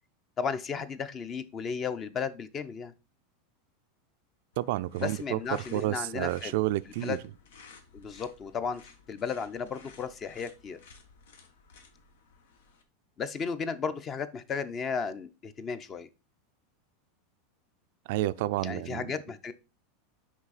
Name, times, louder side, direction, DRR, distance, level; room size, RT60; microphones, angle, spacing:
voice 1, 0.4-2.9 5.0-6.5 7.0-7.2 7.9-8.8 9.1-10.8 13.2-16.1 18.6-19.5, left 6 dB, 25° left, 0.5 m, -34 dB
sound 1, 4.5-12.8, left 5 dB, 90° left, 1.2 m, -55 dB
voice 2, 4.6-7.2 18.1-19.1, right 15 dB, 60° right, 0.3 m, -30 dB
6.1 x 4.8 x 4.0 m
supercardioid pair, 160°, 0 cm